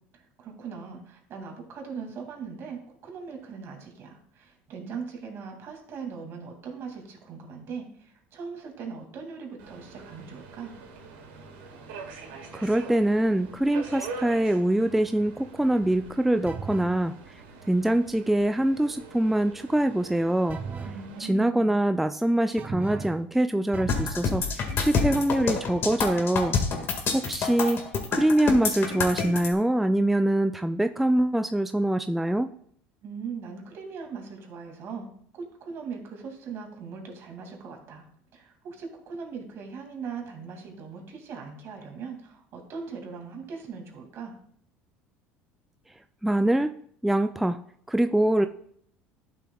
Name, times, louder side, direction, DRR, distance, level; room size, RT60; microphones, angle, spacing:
voice 1, 0.4-10.7 20.8-21.8 33.0-35.1 35.3-38.0 38.3-44.3, right 5 dB, 55° right, 2 dB, 2.3 m, -40 dB
Subway metro underground, 9.6-21.2, right 4 dB, 80° right, 1.9 m, -44 dB
voice 2, 12.5-17.1 17.7-20.6 21.2-26.6 27.1-27.8 28.1-32.5 46.2-46.7 47.0-47.6 47.9-48.5, right 1 dB, 5° right, 8 dB, 0.3 m, -24 dB
sound 1, 16.5-17.0 20.5-21.0 22.6-23.2 23.7-24.2, right 5 dB, 30° right, 0.7 m, -36 dB
sound 2, 23.9-29.5, left 5 dB, 45° left, 1.8 m, -27 dB
12.0 x 6.9 x 2.3 m, 0.65 s
supercardioid pair, 90°, 5 cm